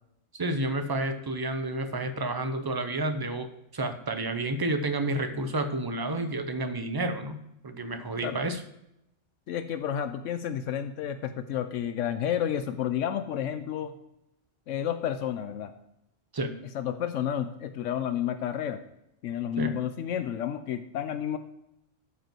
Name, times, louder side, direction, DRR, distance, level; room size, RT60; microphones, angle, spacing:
voice 1, 0.3-8.6 16.3-16.6 19.6-19.8, right 2 dB, 25° right, 8 dB, 0.6 m, -30 dB
voice 2, 9.5-13.9 14.7-15.7 16.7-18.8 19.2-21.4, left 9 dB, 80° left, 10 dB, 0.9 m, -31 dB
12.5 x 5.3 x 4.5 m, 0.83 s
omnidirectional pair, 1.3 m